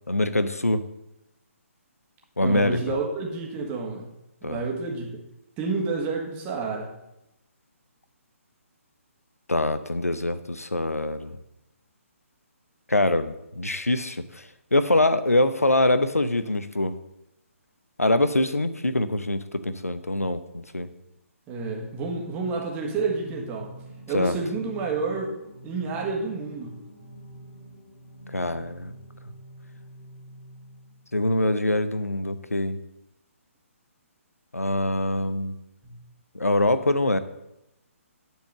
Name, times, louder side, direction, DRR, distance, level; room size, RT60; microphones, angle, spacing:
voice 1, 0.1-0.9 2.4-3.0 4.4-4.6 9.5-11.4 12.9-17.0 18.0-20.9 24.1-24.4 28.3-28.9 31.1-32.8 34.5-35.5 36.3-37.2, left 1 dB, 90° left, 12 dB, 0.7 m, -24 dB
voice 2, 2.4-4.1 4.4-5.2 5.6-6.9 21.5-23.7 24.1-25.3 25.6-26.7 35.8-36.0, right 4 dB, 20° right, 0 dB, 1.7 m, -29 dB
Singing, 22.3-31.2, right 1 dB, 15° left, 3.1 m, -46 dB
10.0 x 4.7 x 6.6 m, 0.87 s
figure-of-eight pair, 140°, 8 cm